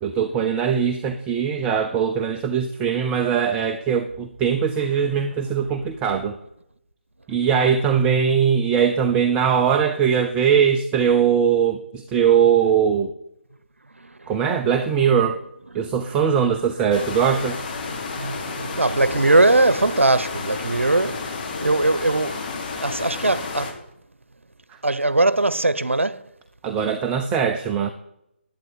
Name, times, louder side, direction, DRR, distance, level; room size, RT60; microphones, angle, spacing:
voice 1, 0.0-6.4 7.3-13.1 14.3-15.4 15.7-17.6 24.7-24.8 26.6-27.9, right 7 dB, 15° right, 0.7 m, -21 dB
voice 2, 14.0-14.3 15.8-15.9 17.8-23.8 24.8-26.2, right 2 dB, 85° right, 0.9 m, -21 dB
sound 1, 16.9-23.7, left 4 dB, 45° left, 3.6 m, -31 dB
11.5 x 9.2 x 9.5 m
figure-of-eight pair, 145°, 7 cm